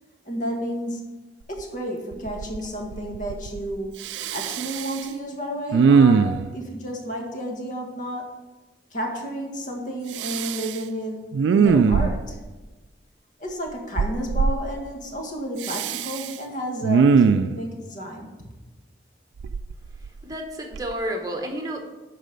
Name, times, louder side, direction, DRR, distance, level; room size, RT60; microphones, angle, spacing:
voice 1, 0.2-1.1 1.5-4.0 4.3-8.3 8.9-11.2 11.5-12.4 13.4-18.3, equal, 45° left, 1 dB, 1.5 m, -31 dB
Respiratory sounds, 1.6-1.7 2.1-2.7 2.9-3.7 4.0-5.0 5.7-6.5 10.1-10.8 11.3-12.4 14.0-14.6 15.6-16.3 16.8-17.6 19.4-20.3 20.7-20.9, right 5 dB, 90° right, 0.3 m, -21 dB
voice 2, 20.2-21.8, right 1 dB, 20° right, 3 dB, 1.1 m, -30 dB
12.0 x 4.1 x 5.2 m, 1.2 s
head